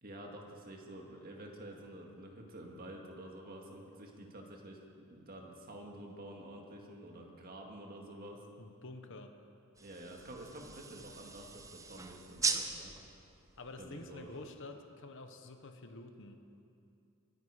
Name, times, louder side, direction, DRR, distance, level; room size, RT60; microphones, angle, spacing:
voice 1, 0.0-4.8 5.1-8.4 9.8-12.9 13.8-14.4, right 1 dB, 40° right, 1 dB, 1.9 m, -49 dB
voice 2, 8.6-9.3 13.6-16.4, left 2 dB, 55° left, 6 dB, 1.1 m, -48 dB
sound 1, 9.7-14.6, right 4 dB, 15° right, 0.6 m, -40 dB
24.0 x 9.4 x 4.9 m, 2.6 s
head